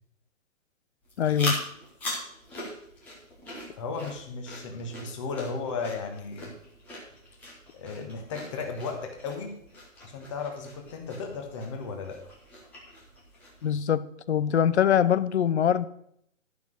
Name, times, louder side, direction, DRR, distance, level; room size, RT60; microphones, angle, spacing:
sound 1, 1.0-13.8, left 1 dB, 5° left, 0.8 m, -41 dB
voice 1, 1.2-1.6 13.6-15.9, left 9 dB, 55° left, 16 dB, 0.7 m, -23 dB
voice 2, 3.8-6.5 7.7-9.6 10.0-12.2, left 4 dB, 25° left, 3 dB, 1.4 m, -35 dB
12.0 x 5.9 x 6.5 m, 0.71 s
hypercardioid pair, 170°, 40 cm